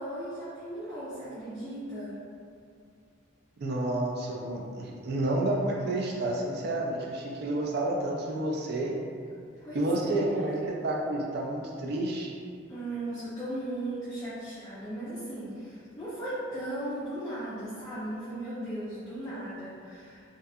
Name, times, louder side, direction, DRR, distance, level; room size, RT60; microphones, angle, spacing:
voice 1, 0.0-2.2 9.6-10.5 12.7-20.2, right 1 dB, 15° left, -12 dB, 0.4 m, -37 dB
voice 2, 3.6-9.0 9.7-12.4, right 1 dB, 50° right, -1 dB, 0.3 m, -30 dB
2.6 x 2.3 x 2.3 m, 2.3 s
head